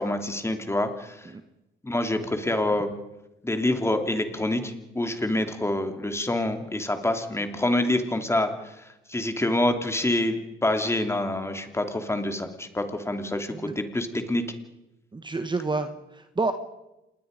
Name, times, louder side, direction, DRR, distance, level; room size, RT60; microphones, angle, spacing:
voice 1, 0.0-1.3 1.8-2.9 3.4-14.4, left 1 dB, 15° left, 7 dB, 2.8 m, -27 dB
voice 2, 15.1-16.5, right 3 dB, 25° right, 9 dB, 1.4 m, -29 dB
27.0 x 20.5 x 5.2 m, 0.95 s
cardioid pair, 90°, 20 cm